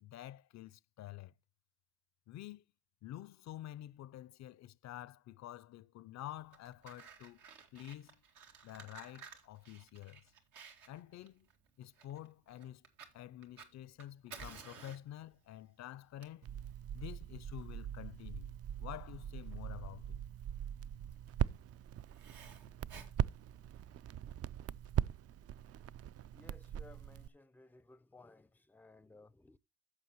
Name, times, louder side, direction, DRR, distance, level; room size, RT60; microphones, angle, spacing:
voice 1, 0.0-1.3 2.3-2.6 3.0-7.4 7.7-8.2 8.6-10.2 10.9-11.5 11.8-12.8 13.1-16.5 16.9-18.5 18.8-20.2, left 13 dB, 65° left, 0.4 m, -49 dB
Fire, 6.3-24.1, right 6 dB, 90° right, 2.1 m, -56 dB
Crackle, 16.4-27.3, right 10 dB, 55° right, 0.4 m, -41 dB
voice 2, 26.3-29.6, left 2 dB, 5° left, 0.4 m, -59 dB
14.0 x 6.1 x 2.9 m
cardioid pair, 90°, 30 cm